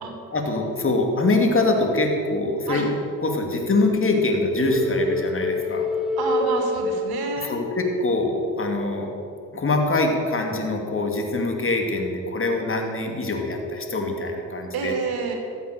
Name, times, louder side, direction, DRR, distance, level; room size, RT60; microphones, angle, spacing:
voice 1, 0.3-2.9 3.2-5.9 7.4-9.1 9.5-15.0, left 2 dB, 35° left, 3 dB, 2.6 m, -24 dB
sound 1, 4.7-7.8, left 2 dB, ahead, 1.3 m, -26 dB
voice 2, 6.2-7.5 14.7-15.4, right 4 dB, 70° right, 2 dB, 2.6 m, -28 dB
14.0 x 8.1 x 6.7 m, 2.5 s
supercardioid pair, 65°, 38 cm